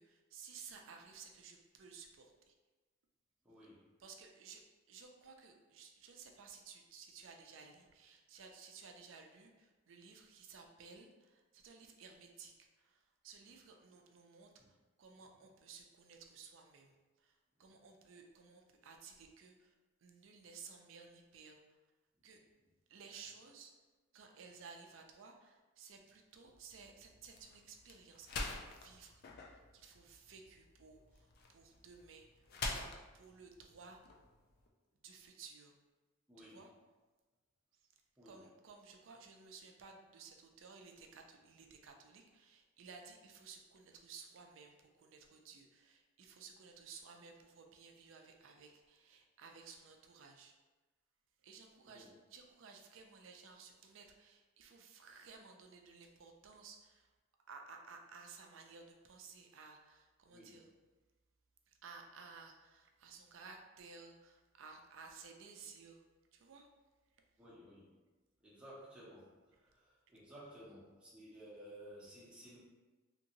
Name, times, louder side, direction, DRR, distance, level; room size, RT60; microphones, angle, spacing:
voice 1, 0.0-2.5 4.0-19.7 20.0-21.6 22.2-22.4 22.9-23.8 24.1-29.2 29.5-32.9 33.1-34.0 35.0-35.8 36.4-36.7 37.7-37.9 38.2-50.5 51.4-57.1 57.5-60.7 61.7-66.0 66.3-66.7, right 5 dB, 70° right, 3 dB, 0.4 m, -56 dB
voice 2, 3.4-3.8 14.6-14.7 36.3-36.6 38.2-38.4 51.9-52.1 60.3-60.6 67.4-67.9 68.4-72.6, equal, 5° right, -9 dB, 0.9 m, -55 dB
sound 1, 26.4-34.7, left 3 dB, 50° left, 0.3 m, -47 dB
2.9 x 2.8 x 2.6 m, 1.2 s
head